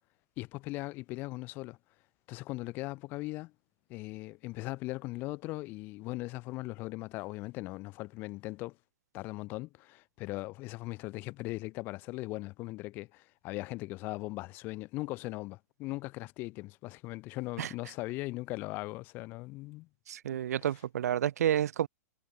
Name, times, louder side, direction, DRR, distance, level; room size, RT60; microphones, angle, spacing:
voice 1, 0.4-1.8 2.3-3.5 3.9-8.8 9.1-19.9, left 21 dB, 20° left, 1.1 m, -39 dB
voice 2, 20.1-21.9, right 10 dB, 65° right, 0.8 m, -30 dB
hypercardioid pair, 175°, 9 cm